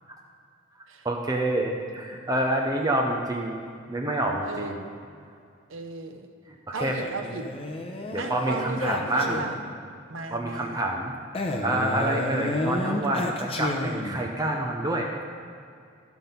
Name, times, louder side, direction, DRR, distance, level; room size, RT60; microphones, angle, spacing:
voice 1, 1.0-3.6 3.9-4.8 6.7-7.0 8.1-9.4 10.3-11.1 11.6-15.1, right 1 dB, 20° right, 1 dB, 0.7 m, -27 dB
voice 2, 4.4-4.9 5.7-6.3 6.7-7.5 8.2-9.6 10.1-10.8, right 3 dB, 85° right, 6 dB, 0.8 m, -36 dB
Male speech man speaking, 6.8-9.8 11.3-14.3, left 1 dB, 30° left, 0.8 m, -31 dB
13.5 x 5.9 x 5.4 m, 2.3 s
head